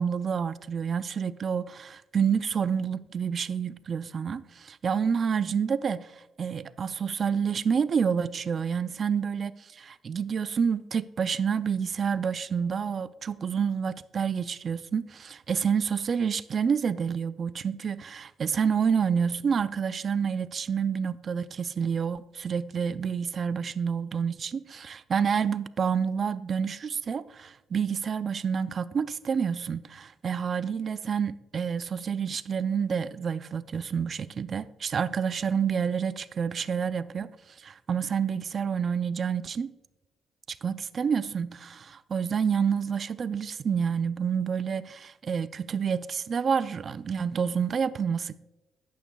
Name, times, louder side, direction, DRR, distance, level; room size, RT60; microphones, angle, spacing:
voice 1, 0.0-39.7 40.5-48.4, right 6 dB, 50° right, 0.4 m, -28 dB
12.0 x 8.7 x 2.3 m
cardioid pair, 90°, 0 cm